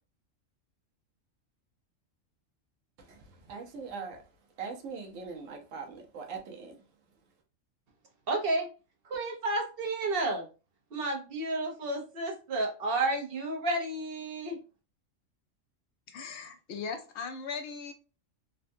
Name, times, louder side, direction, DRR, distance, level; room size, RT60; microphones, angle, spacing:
voice 1, 3.0-4.2 4.6-6.8, right 5 dB, 75° right, 1.1 m, -41 dB
voice 2, 8.3-8.7 9.0-10.5 10.9-14.6, right 2 dB, 50° right, 0.9 m, -31 dB
voice 3, 16.1-17.9, left 5 dB, 65° left, 0.8 m, -38 dB
3.5 x 2.2 x 2.5 m
omnidirectional pair, 1.4 m